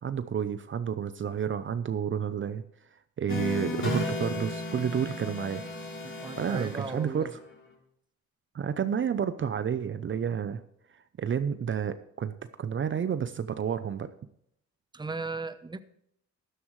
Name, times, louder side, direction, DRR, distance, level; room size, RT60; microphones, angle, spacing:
voice 1, 0.0-2.6 2.9-5.6 6.4-7.4 8.5-10.6 10.9-14.1, right 7 dB, 40° right, 12 dB, 0.7 m, -30 dB
sound 1, 3.3-7.5, left 2 dB, 40° left, 3.9 m, -35 dB
voice 2, 6.0-7.3 14.9-15.8, right 3 dB, 15° right, 12 dB, 0.8 m, -37 dB
13.5 x 11.0 x 3.2 m, 0.71 s
cardioid pair, 90°, 30 cm